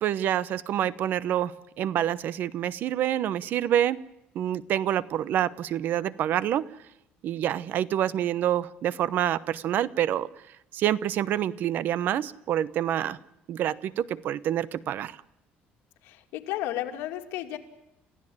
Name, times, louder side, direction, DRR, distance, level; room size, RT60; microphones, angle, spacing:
voice 1, 0.0-4.0 4.3-6.7 7.2-10.3 10.7-13.2 13.5-15.1, right 11 dB, 55° right, 18 dB, 0.9 m, -27 dB
voice 2, 16.0-17.6, left 13 dB, 85° left, 5 dB, 2.6 m, -33 dB
29.5 x 15.5 x 8.7 m, 0.86 s
cardioid pair, 155°, 4 cm